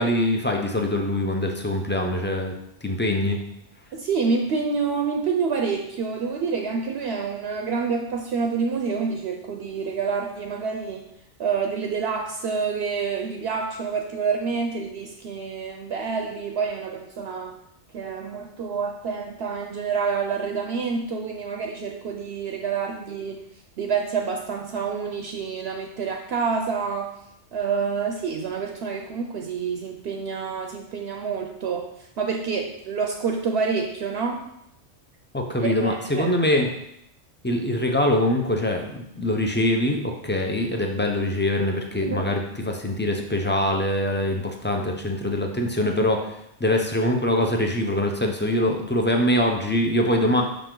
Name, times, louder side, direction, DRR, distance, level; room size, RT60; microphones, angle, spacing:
voice 1, 0.0-2.5 2.8-3.4 35.3-36.7 37.4-50.4, left 1 dB, 15° left, 2 dB, 0.4 m, -23 dB
voice 2, 3.9-11.0 11.4-17.6 17.9-23.4 23.8-27.1 27.5-31.9 32.2-34.4 35.6-36.3 42.0-42.2, right 5 dB, 65° right, 3 dB, 0.8 m, -27 dB
5.9 x 5.1 x 3.8 m, 0.77 s
omnidirectional pair, 1.3 m